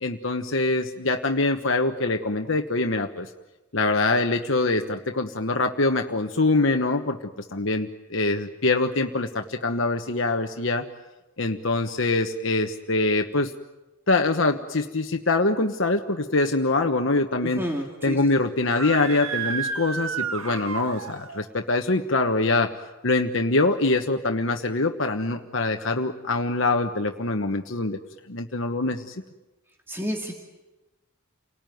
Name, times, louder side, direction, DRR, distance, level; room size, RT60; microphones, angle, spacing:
voice 1, 0.0-3.3 3.7-10.9 11.4-13.5 14.1-17.6 18.0-22.7 23.0-28.0 28.3-29.2, left 2 dB, 65° left, 4 dB, 1.2 m, -24 dB
voice 2, 17.6-18.2 29.9-30.3, equal, 10° right, 0 dB, 2.5 m, -29 dB
Screaming, 18.6-21.4, right 5 dB, 80° right, 1.8 m, -31 dB
30.0 x 19.0 x 9.3 m, 1.1 s
head